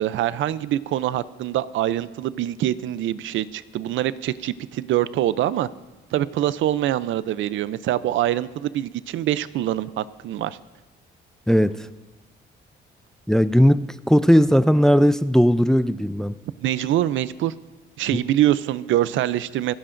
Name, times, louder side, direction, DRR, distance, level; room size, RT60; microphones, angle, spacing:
voice 1, 0.0-5.7 6.1-10.6 16.6-17.5 18.0-19.7, right 13 dB, 75° right, 16 dB, 0.5 m, -24 dB
voice 2, 11.5-11.9 13.3-16.3 18.1-18.2, equal, 5° left, 14 dB, 0.4 m, -17 dB
26.0 x 10.0 x 2.6 m, 1.2 s
cardioid pair, 90°, 20 cm